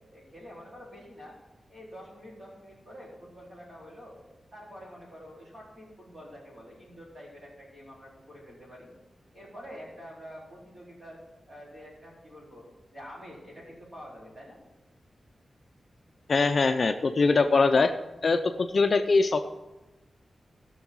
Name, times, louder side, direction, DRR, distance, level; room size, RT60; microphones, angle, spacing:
voice 1, 0.1-1.4 1.7-4.2 4.5-8.9 9.3-11.2 11.5-12.7 12.9-14.6, equal, 25° right, -5 dB, 4.1 m, -47 dB
voice 2, 16.3-17.9 18.2-19.5, left 4 dB, 40° left, 6 dB, 0.5 m, -22 dB
16.0 x 6.3 x 4.6 m, 1.1 s
wide cardioid pair, 175°, 0 cm